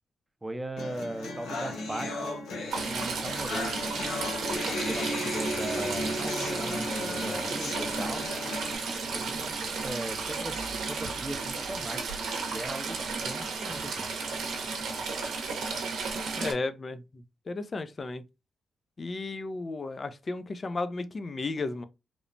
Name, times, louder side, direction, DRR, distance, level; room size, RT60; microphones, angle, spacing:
voice 1, 0.4-2.4 2.9-3.8 4.8-8.3 9.1-10.6 10.9-12.0 12.5-14.1, right 1 dB, 15° right, 0.5 m, -38 dB
sound 1, 0.8-8.8, left 1 dB, 85° left, 0.7 m, -34 dB
Stream / Trickle dribble, 2.7-16.5, right 4 dB, 80° right, 0.7 m, -33 dB
sound 2, 10.1-12.9, right 4 dB, 20° left, 0.7 m, -51 dB
voice 2, 16.4-18.2 19.0-21.8, left 3 dB, 45° left, 0.4 m, -34 dB
3.0 x 2.0 x 2.5 m
cardioid pair, 60°, 0 cm